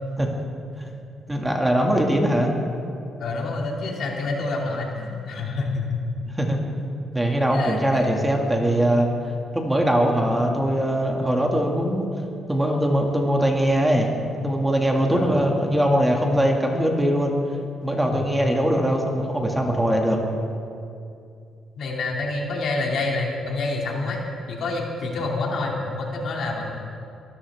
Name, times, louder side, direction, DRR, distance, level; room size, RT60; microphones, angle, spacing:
voice 1, 1.3-2.5 6.3-6.6 7.1-9.1 9.5-12.1 12.5-17.3 17.8-20.2, equal, 10° right, 1 dB, 2.3 m, -21 dB
voice 2, 3.2-5.9 7.5-8.4 15.1-15.3 18.1-18.3 21.8-24.2 24.5-26.7, left 3 dB, 65° left, -1 dB, 2.6 m, -28 dB
23.0 x 13.5 x 3.7 m, 2.5 s
cardioid pair, 80°, 0 cm